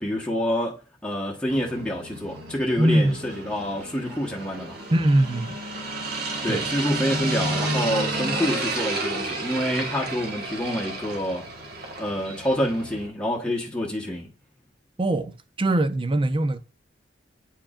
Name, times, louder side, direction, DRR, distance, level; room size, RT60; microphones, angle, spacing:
voice 1, 0.0-4.8 6.4-11.5 12.0-14.3, equal, 5° left, 1.1 m, -27 dB
sound 1, 1.5-13.1, right 2 dB, 55° right, 1.5 m, -31 dB
voice 2, 2.8-3.2 4.9-5.6 6.5-6.6 15.0-16.6, right 1 dB, 30° right, 0.5 m, -22 dB
8.8 x 4.6 x 2.4 m
head